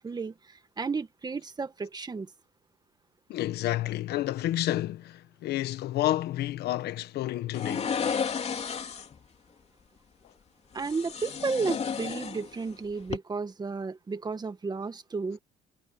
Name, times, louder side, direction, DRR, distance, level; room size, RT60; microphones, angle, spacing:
voice 1, 0.0-2.3 10.7-15.4, right 4 dB, 25° right, 1.8 m, -33 dB
voice 2, 3.3-7.9, left 14 dB, 75° left, 1.2 m, -30 dB
sound 1, 7.5-9.2 10.8-12.7 13.0-13.2, left 6 dB, 40° left, 3.2 m, -32 dB
cardioid pair, 110°, 17 cm